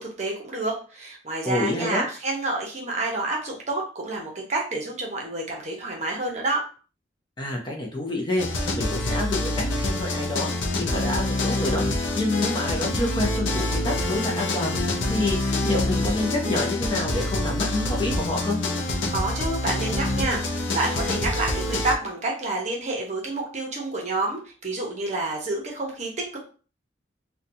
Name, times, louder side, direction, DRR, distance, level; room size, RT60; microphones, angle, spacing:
voice 1, 0.0-6.6 19.1-26.4, right 2 dB, 40° right, -1 dB, 0.8 m, -29 dB
voice 2, 1.4-2.1 7.4-8.5 8.7-10.5 10.7-11.8 12.1-18.6, left 2 dB, 25° left, 0 dB, 0.5 m, -28 dB
sound 1, 8.4-22.0, left 2 dB, 80° left, 0.5 m, -26 dB
2.7 x 2.2 x 2.6 m, 0.38 s
head